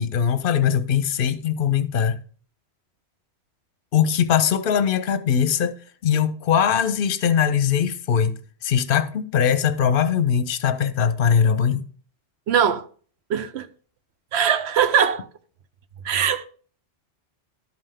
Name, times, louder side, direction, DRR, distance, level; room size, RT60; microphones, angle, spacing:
voice 1, 0.0-2.2 3.9-5.8 6.0-8.3 8.6-11.9, left 8 dB, 55° left, 0.8 m, -21 dB
voice 2, 12.5-12.9 13.3-13.7 14.3-15.3 16.0-16.5, right 8 dB, 70° right, 0.9 m, -21 dB
12.0 x 5.6 x 3.5 m
omnidirectional pair, 1.2 m